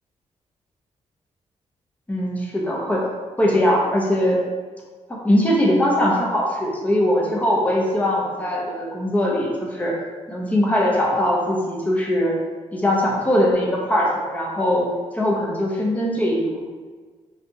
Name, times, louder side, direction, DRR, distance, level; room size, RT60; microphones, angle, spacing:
voice 1, 2.1-3.0 3.4-4.4 5.1-9.9 10.3-12.3 12.7-14.9 15.1-16.6, left 1 dB, 10° left, -3 dB, 0.8 m, -21 dB
5.4 x 2.5 x 2.8 m, 1.4 s
wide cardioid pair, 130°, 12 cm